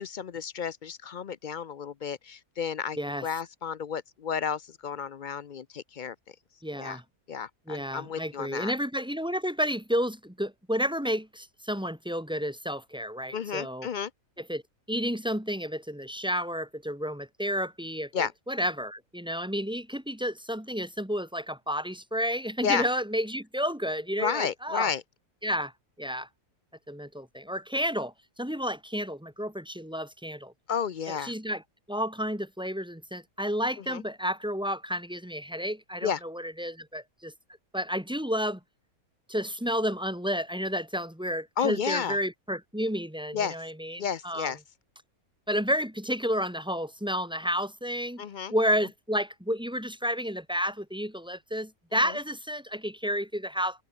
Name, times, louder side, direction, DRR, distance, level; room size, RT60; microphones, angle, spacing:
voice 1, 0.0-6.4 6.8-7.0 7.3-8.7 13.3-14.1 18.1-18.3 22.6-22.9 24.2-25.0 30.7-31.3 33.9-34.0 36.0-36.2 41.6-42.2 43.3-43.6 44.0-44.6 48.2-48.5 52.0-52.1, left 7 dB, 55° left, 0.5 m, -32 dB
voice 2, 3.0-3.3 6.6-7.0 7.7-13.9 14.4-14.6 14.9-24.9 25.4-25.7 26.0-26.3 26.9-30.5 31.1-31.6 31.9-37.3 37.7-38.6 39.3-44.5 45.5-48.2 48.5-53.8, equal, 5° right, 1.9 m, -31 dB
open air
omnidirectional pair, 1.5 m